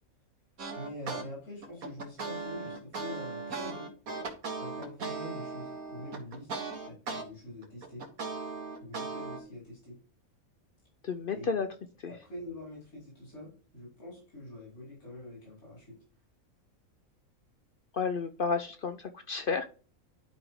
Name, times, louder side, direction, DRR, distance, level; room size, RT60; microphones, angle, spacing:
sound 1, 0.6-1.2 1.6-7.2 7.6-9.4, right 4 dB, 80° right, 1.9 m, -38 dB
voice 1, 0.7-3.9 4.6-6.5 6.9-8.1 8.8-10.0 11.3-11.5 12.0-16.0, left 1 dB, 85° left, -5 dB, 4.8 m, -45 dB
voice 2, 11.0-11.7 12.0-12.1 17.9-19.6, left 5 dB, 60° left, 8 dB, 0.6 m, -31 dB
11.0 x 5.1 x 3.1 m, 0.39 s
omnidirectional pair, 1.5 m